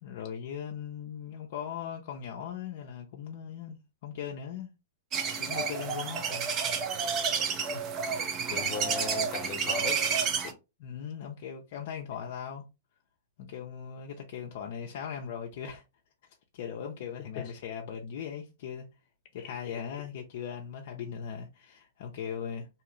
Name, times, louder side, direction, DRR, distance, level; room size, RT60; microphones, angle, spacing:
voice 1, 0.0-4.7 5.4-6.2 8.1-8.3 10.8-12.6 13.4-15.8 16.5-18.8 19.3-22.7, left 8 dB, 60° left, 0.5 m, -39 dB
sound 1, 5.1-10.5, right 6 dB, 30° right, 0.6 m, -30 dB
voice 2, 8.5-10.2 10.4-10.5 17.4-17.5 19.4-19.8, left 5 dB, 45° left, 0.9 m, -38 dB
2.8 x 2.4 x 3.0 m
hypercardioid pair, 130°, 0 cm